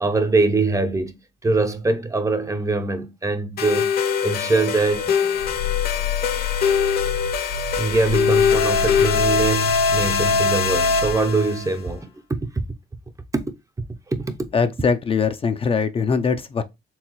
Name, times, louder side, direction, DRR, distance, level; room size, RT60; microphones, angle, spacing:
voice 1, 0.0-1.2 1.4-5.1 7.5-12.6 13.3-13.5 14.1-14.5, right 3 dB, 20° right, 0.6 m, -23 dB
sound 1, 3.6-11.7, left 6 dB, 60° left, 0.9 m, -22 dB
Growling, 4.9-11.2, left 6 dB, 85° left, 1.0 m, -29 dB
voice 2, 14.5-16.6, left 5 dB, 30° left, 0.4 m, -21 dB
4.6 x 3.4 x 2.9 m
cardioid pair, 105°, 18 cm